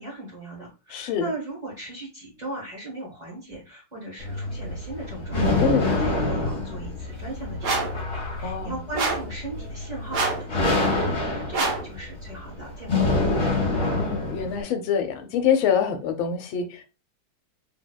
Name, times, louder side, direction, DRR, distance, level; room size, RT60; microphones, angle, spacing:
voice 1, 0.0-8.0 8.4-13.5, right 2 dB, 25° right, 1.2 m, -38 dB
voice 2, 0.9-1.3 5.6-6.0 8.4-8.8 14.0-16.8, left 7 dB, 90° left, 1.4 m, -25 dB
sound 1, 4.2-14.6, left 2 dB, 35° left, 1.3 m, -26 dB
sound 2, 7.6-8.0 8.9-9.3 10.1-10.5 11.5-11.9, right 3 dB, 65° right, 1.4 m, -26 dB
3.8 x 2.8 x 2.2 m
omnidirectional pair, 2.1 m